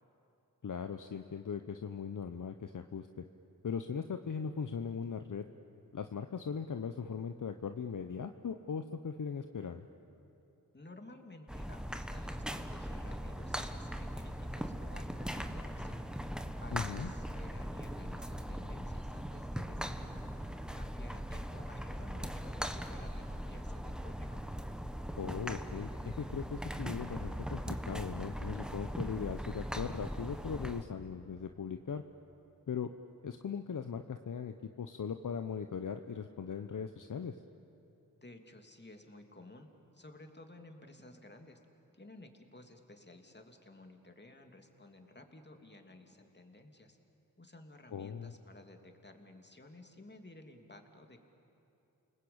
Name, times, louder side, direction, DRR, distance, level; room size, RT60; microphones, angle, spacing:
voice 1, 0.6-3.2 3.6-5.4 5.9-9.9 16.7-17.1 25.2-32.0 32.7-32.9 33.2-37.4 47.9-48.3, left 6 dB, 60° left, 7 dB, 1.0 m, -39 dB
voice 2, 10.7-16.0 16.6-20.1 20.7-24.4 38.2-41.6 41.9-47.0 47.4-51.2, left 2 dB, 30° left, 4 dB, 3.0 m, -54 dB
sound 1, 11.5-30.8, equal, ahead, 1.5 m, -40 dB
29.0 x 20.0 x 8.8 m, 2.9 s
cardioid pair, 45°, 36 cm